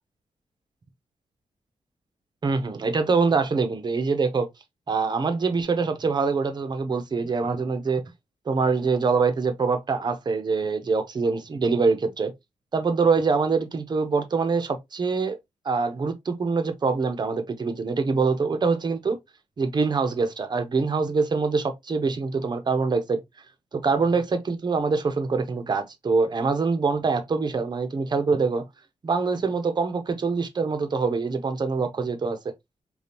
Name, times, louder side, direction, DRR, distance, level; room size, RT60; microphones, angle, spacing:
voice 1, 2.4-4.5 4.9-8.0 8.5-12.3 12.7-15.4 15.6-19.2 19.6-23.2 23.7-28.6 29.0-32.5, right 4 dB, 35° right, 0.7 m, -24 dB
5.1 x 2.3 x 2.7 m
wide cardioid pair, 155°, 12 cm